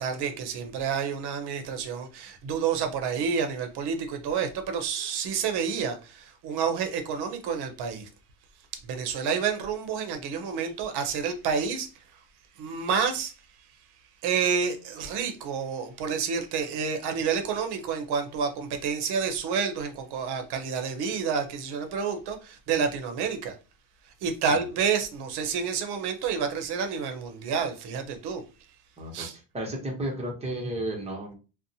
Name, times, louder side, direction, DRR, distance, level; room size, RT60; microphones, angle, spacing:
voice 1, 0.0-8.1 8.8-12.0 12.6-13.3 14.2-23.5 24.2-28.4 29.1-29.3, right 6 dB, 70° right, 0.7 m, -29 dB
voice 2, 29.5-31.3, right 1 dB, 15° right, 0.7 m, -33 dB
2.6 x 2.1 x 2.6 m
cardioid pair, 145°, 41 cm